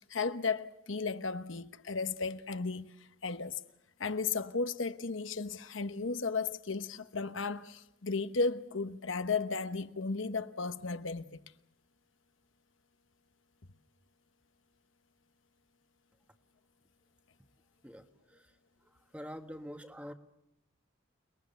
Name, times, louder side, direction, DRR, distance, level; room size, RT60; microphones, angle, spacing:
voice 1, 0.0-2.9 3.2-3.6 4.0-11.3, left 4 dB, 75° left, 1.1 m, -34 dB
voice 2, 19.1-20.1, equal, 5° right, 1.3 m, -44 dB
29.0 x 22.0 x 6.8 m
head